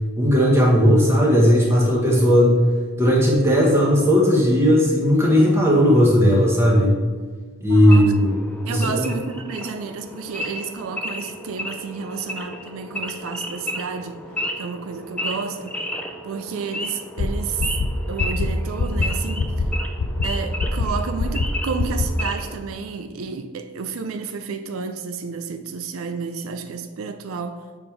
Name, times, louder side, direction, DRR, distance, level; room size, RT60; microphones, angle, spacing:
voice 1, 0.2-2.6 3.0-7.0 7.6-8.4 8.7-9.0, equal, 10° right, -3 dB, 1.2 m, -16 dB
voice 2, 7.7-8.1 8.7-14.2 14.6-15.8 16.2-17.7 18.1-19.7 20.2-27.6, right 5 dB, 75° right, 8 dB, 0.4 m, -31 dB
Wild animals / Idling, 7.9-22.6, left 1 dB, 5° left, 0.4 m, -33 dB
sound 1, 17.2-17.3 17.6-17.9 18.2-18.5 18.8-19.1 19.4-19.7 20.0-20.3 20.6-20.9 21.2-21.5 21.8-22.1, left 4 dB, 65° left, 0.5 m, -22 dB
7.0 x 3.6 x 4.5 m, 1.5 s
head